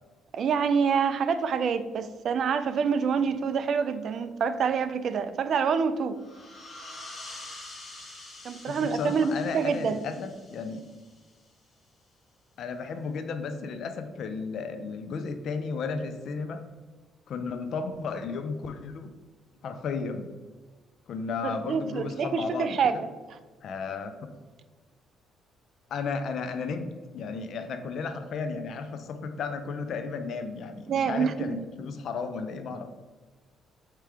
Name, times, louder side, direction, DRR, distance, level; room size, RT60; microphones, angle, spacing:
voice 1, 0.3-6.2 8.4-10.1 21.4-23.1 30.9-31.6, right 6 dB, 55° right, 11 dB, 0.3 m, -26 dB
sound 1, 6.2-11.5, left 2 dB, 35° left, 1.2 m, -46 dB
voice 2, 8.6-10.8 12.6-16.6 17.3-19.1 19.6-20.3 21.1-22.9 23.6-24.1 25.9-32.9, left 4 dB, 65° left, 8 dB, 0.4 m, -34 dB
4.8 x 2.9 x 3.5 m, 1.3 s
cardioid pair, 105°, 0 cm